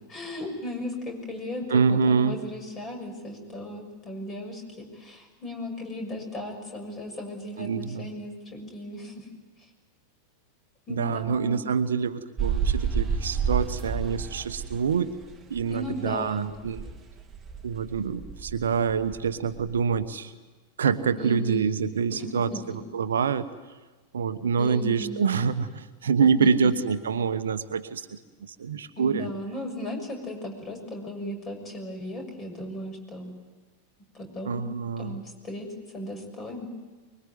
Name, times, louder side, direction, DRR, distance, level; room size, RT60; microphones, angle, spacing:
voice 1, 0.1-9.2 10.9-11.7 15.7-16.5 21.2-21.7 22.1-22.6 24.6-25.3 26.2-26.3 26.6-26.7 29.0-33.3 34.1-34.6 35.0-35.7 35.9-36.7, left 1 dB, 25° left, 4 dB, 6.7 m, -36 dB
voice 2, 1.7-2.4 7.6-8.1 10.9-15.1 15.5-16.9 17.6-20.3 20.8-23.5 24.1-29.3 34.4-35.2, right 6 dB, 65° right, 11 dB, 1.1 m, -26 dB
sound 1, 12.4-16.2 16.5-19.9, right 6 dB, 20° right, 1.7 m, -30 dB
24.5 x 22.5 x 9.5 m, 1.3 s
figure-of-eight pair, 90°, 0 cm